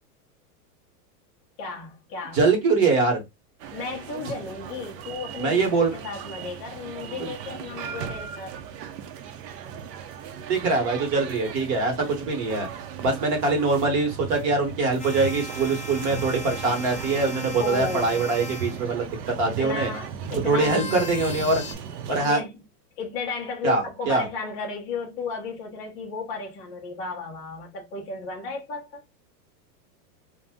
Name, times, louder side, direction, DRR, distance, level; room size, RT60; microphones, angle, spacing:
voice 1, 1.6-2.5 3.7-5.6 5.9-8.6 17.6-18.3 19.4-21.1 22.1-22.6 23.0-29.0, left 4 dB, 15° left, 0.4 m, -34 dB
voice 2, 2.3-3.2 5.4-5.9 7.2-7.3 10.5-12.7 13.0-19.9 20.4-21.6 22.1-22.4 23.6-24.2, right 3 dB, 30° right, 1.0 m, -23 dB
sound 1, 3.6-22.3, right 7 dB, 85° right, 0.7 m, -37 dB
sound 2, 15.0-18.8 20.6-21.7, left 1 dB, 5° right, 0.7 m, -37 dB
2.7 x 2.1 x 3.4 m
supercardioid pair, 150°, 48 cm